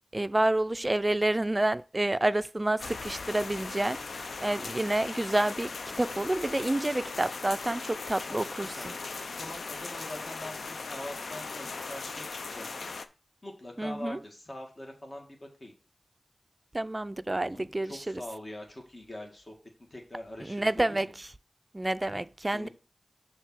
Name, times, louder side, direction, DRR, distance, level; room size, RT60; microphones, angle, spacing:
voice 1, 0.1-5.7 6.0-8.9 13.8-14.2 16.7-18.2 20.5-21.3 21.7-22.7, right 1 dB, 30° right, 0.4 m, -29 dB
sound 1, 2.8-13.1, left 4 dB, 85° left, 0.5 m, -39 dB
voice 2, 8.3-8.9 9.4-12.9 13.4-15.7 17.5-19.5 19.8-21.1 22.5-22.7, left 1 dB, 40° left, 1.9 m, -43 dB
6.6 x 3.6 x 6.1 m
cardioid pair, 50°, 0 cm